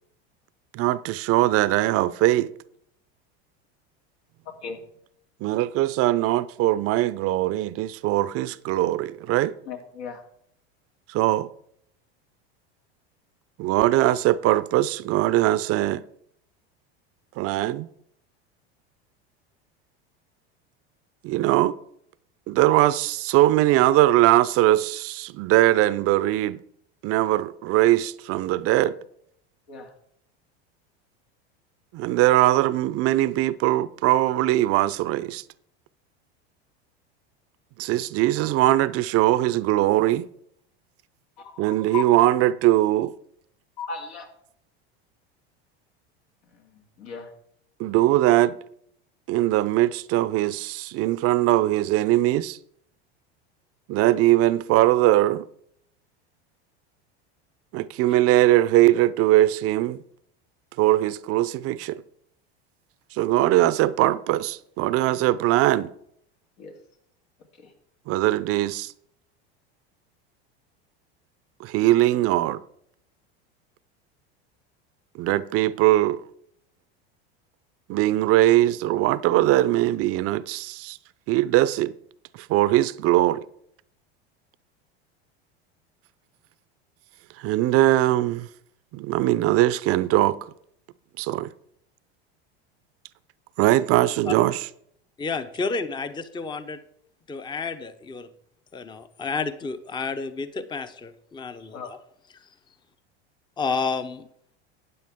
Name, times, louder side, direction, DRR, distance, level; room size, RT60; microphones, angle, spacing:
voice 1, 0.7-2.5 5.4-9.5 11.1-11.5 13.6-16.0 17.4-17.9 21.2-21.7 22.5-26.6 27.0-29.0 31.9-35.4 37.8-40.3 41.6-43.1 47.8-48.6 49.3-52.6 53.9-55.4 57.7-60.0 60.8-62.0 63.1-65.9 68.1-68.9 71.6-72.6 75.2-76.2 77.9-81.0 81.3-81.9 82.4-83.4 87.4-88.5 88.9-90.4 91.2-91.5 93.6-94.6, right 15 dB, 45° right, 0.5 m, -21 dB
voice 2, 9.7-10.2 29.7-29.9 41.4-41.6 41.9-42.0 43.8-44.3 47.0-47.3 63.4-63.5 66.6-66.7 67.6-67.7 101.6-101.9, left 6 dB, 80° left, 2.5 m, -36 dB
voice 3, 95.2-96.8 97.3-98.3 98.7-102.0 103.6-104.3, left 4 dB, 15° left, 0.6 m, -30 dB
12.5 x 9.2 x 3.6 m
hypercardioid pair, 95°, 32 cm